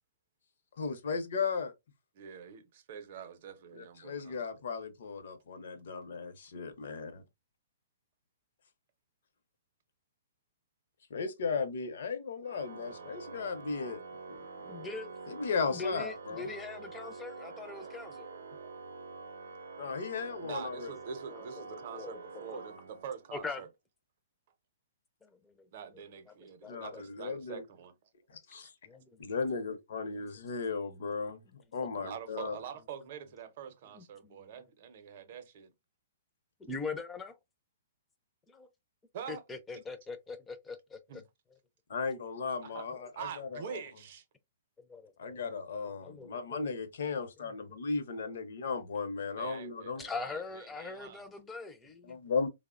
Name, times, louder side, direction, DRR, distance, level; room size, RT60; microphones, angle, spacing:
voice 1, 0.8-1.7 3.7-7.2 11.1-14.0 14.3-14.7 15.3-16.4 19.8-20.9 26.7-27.6 28.5-28.7 29.2-31.4 31.7-32.6 41.9-43.8 45.2-50.0 52.1-52.5, left 5 dB, 65° left, 0.6 m, -36 dB
voice 2, 2.1-4.4 17.6-18.8 20.4-23.7 25.7-27.9 28.3-28.4 31.9-35.7 39.1-39.4 41.1-41.2 42.6-42.8 43.2-44.2 49.4-50.4 50.7-51.2, right 7 dB, 45° right, 0.6 m, -45 dB
Organ, 12.4-23.4, right 4 dB, 85° right, 0.6 m, -46 dB
voice 3, 14.7-15.1 15.7-18.3 20.9-21.0 21.3-22.1 22.5-22.6 23.3-23.6 25.2-25.7 25.9-26.3 26.6-27.0 28.9-29.3 30.3-30.4 31.4-31.5 33.9-34.7 36.6-37.4 38.5-38.7 39.3-41.2 42.9-43.1 44.9-45.5 45.8-46.8 47.4-47.8 48.2-48.3 50.0-52.2, left 4 dB, 10° left, 0.4 m, -42 dB
3.2 x 2.0 x 2.3 m
hypercardioid pair, 160°, 0 cm